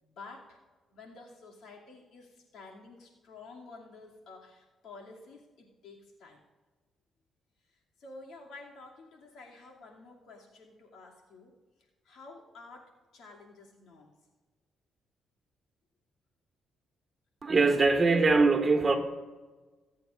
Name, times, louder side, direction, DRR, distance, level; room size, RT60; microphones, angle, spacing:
voice 1, 0.0-0.6 0.9-6.4 8.0-11.6 12.0-14.1, left 3 dB, 75° left, 2.5 m, -51 dB
voice 2, 17.4-19.0, right 3 dB, 30° right, 1.7 m, -22 dB
23.0 x 8.3 x 2.5 m
cardioid pair, 90°, 0 cm